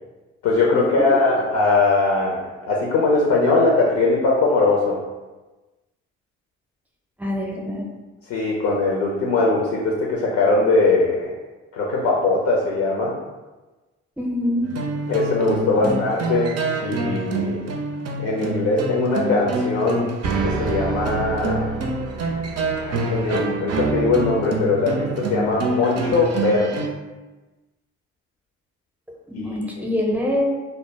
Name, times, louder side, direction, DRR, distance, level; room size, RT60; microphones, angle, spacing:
voice 1, 0.4-5.0 8.3-11.3 11.7-13.1 15.1-17.6 18.2-20.1 20.4-21.7 22.8-26.8 29.3-29.4 29.8-29.9, left 3 dB, 70° left, -3 dB, 0.6 m, -21 dB
voice 2, 7.2-7.9 14.2-14.7 15.8-16.0 29.3-30.4, left 1 dB, 5° right, -2 dB, 0.6 m, -24 dB
sound 1, 14.6-26.9, right 3 dB, 55° right, 0.5 m, -26 dB
2.1 x 2.0 x 3.2 m, 1.2 s
hypercardioid pair, 45°, 31 cm